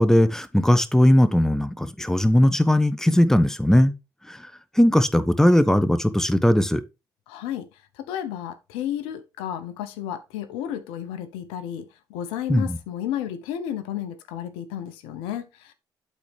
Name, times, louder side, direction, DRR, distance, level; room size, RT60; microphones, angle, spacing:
voice 1, 0.0-3.9 4.8-6.8 12.5-12.8, left 1 dB, 5° left, 1.1 m, -18 dB
voice 2, 7.3-7.7 8.0-15.7, left 10 dB, 80° left, 0.8 m, -32 dB
12.0 x 4.2 x 3.3 m
hypercardioid pair, 50°, 9 cm